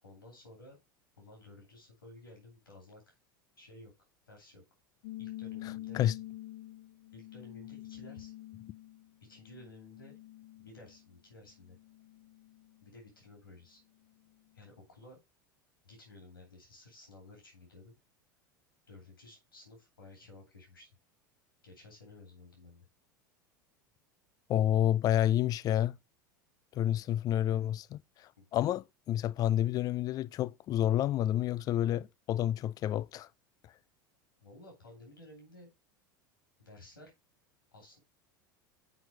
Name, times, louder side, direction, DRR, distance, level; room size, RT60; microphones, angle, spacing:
voice 1, 0.0-0.8 1.2-3.1 3.6-3.9 4.3-4.6 5.2-6.0 7.1-8.3 9.2-10.2 10.6-11.8 12.8-13.8 14.5-15.2 15.8-17.9 18.9-20.9 21.6-22.9 27.4-27.7 28.4-28.5 34.4-35.7 36.6-37.1 37.7-38.0, left 2 dB, 85° left, 2.8 m, -54 dB
sound 1, 5.0-11.1 11.5-12.9, left 15 dB, 60° left, 0.8 m, -47 dB
voice 2, 24.5-26.0 26.7-33.3, left 12 dB, 35° left, 0.3 m, -29 dB
6.1 x 4.5 x 4.8 m
hypercardioid pair, 80°, 11 cm